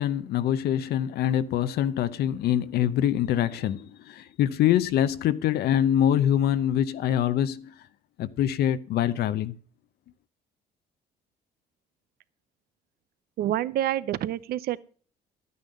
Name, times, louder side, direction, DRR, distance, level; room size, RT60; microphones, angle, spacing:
voice 1, 0.0-7.7 8.2-9.6, left 10 dB, 70° left, 0.8 m, -24 dB
voice 2, 13.4-14.8, right 12 dB, 65° right, 0.6 m, -27 dB
11.5 x 9.6 x 5.2 m
cardioid pair, 110°, 17 cm